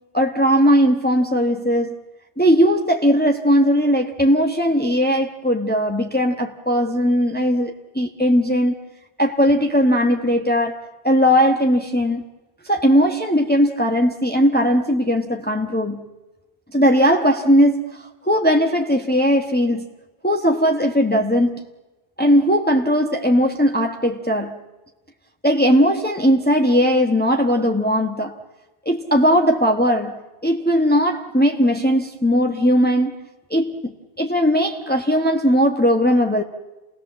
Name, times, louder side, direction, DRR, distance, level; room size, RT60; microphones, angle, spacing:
voice 1, 0.1-1.9 2.4-8.7 9.2-12.2 12.6-16.1 16.7-19.9 20.2-21.6 22.2-24.6 25.4-28.4 28.8-33.1 33.5-33.9 34.2-36.4, equal, 10° left, 1.3 m, -18 dB
29.0 x 19.0 x 7.5 m
omnidirectional pair, 1.0 m